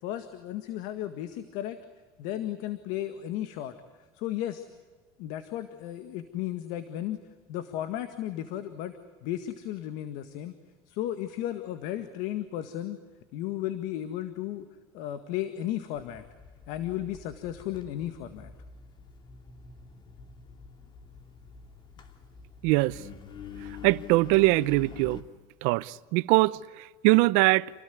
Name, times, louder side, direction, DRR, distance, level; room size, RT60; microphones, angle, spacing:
voice 1, 0.0-1.8 2.2-3.7 4.1-4.7 5.2-7.2 7.5-8.9 9.2-10.5 10.9-13.0 13.3-14.7 14.9-16.3 16.7-18.5, left 12 dB, 70° left, 1.9 m, -34 dB
Engine, 16.0-25.2, left 6 dB, 35° left, 3.1 m, -47 dB
voice 2, 22.6-23.0 23.8-25.2 25.6-27.7, right 21 dB, 75° right, 0.8 m, -22 dB
29.0 x 18.5 x 9.6 m
cardioid pair, 125°, 13 cm